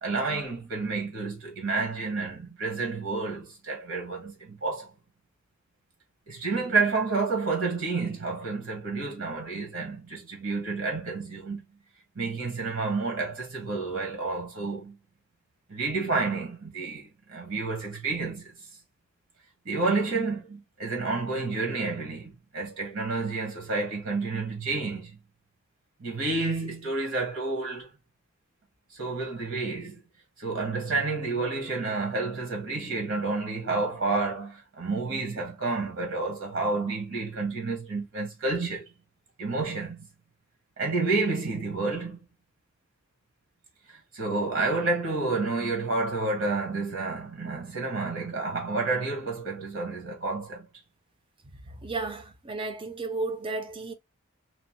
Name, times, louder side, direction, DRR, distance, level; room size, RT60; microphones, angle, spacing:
voice 1, 0.0-4.9 6.3-11.6 12.1-14.9 15.7-18.5 19.6-25.2 26.0-27.9 28.9-30.0 30.4-38.9 39.4-40.0 40.8-42.2 43.9-50.7, right 3 dB, 70° right, 1.2 m, -30 dB
voice 2, 51.8-53.9, right 3 dB, 25° right, 0.4 m, -33 dB
2.9 x 2.0 x 2.9 m
head